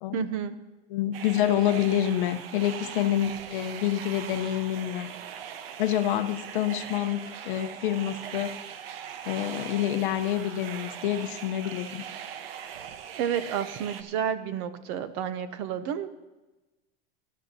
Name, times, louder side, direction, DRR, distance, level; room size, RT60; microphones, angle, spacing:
voice 1, 0.1-0.6 13.2-16.1, right 9 dB, 35° right, 12 dB, 0.5 m, -30 dB
voice 2, 0.9-5.1 5.8-8.5 9.3-12.0, left 11 dB, 60° left, 9 dB, 0.9 m, -27 dB
sound 1, 1.1-14.0, right 8 dB, 80° right, 1.1 m, -40 dB
19.0 x 12.0 x 2.8 m, 1.1 s
supercardioid pair, 180°, 29 cm